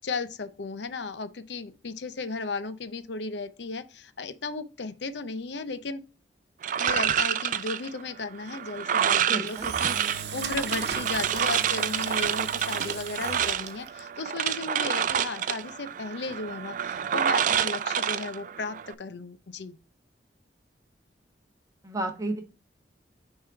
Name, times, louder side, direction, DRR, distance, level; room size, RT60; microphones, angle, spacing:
voice 1, 0.0-6.0 6.8-19.8, left 3 dB, 80° left, 0.7 m, -35 dB
sound 1, 6.6-18.9, right 9 dB, 45° right, 0.3 m, -28 dB
voice 2, 9.2-9.7 21.8-22.4, right 2 dB, 20° right, 1.1 m, -32 dB
Engine / Drill, 9.5-14.0, right 6 dB, 65° right, 0.9 m, -37 dB
6.4 x 3.7 x 4.7 m
head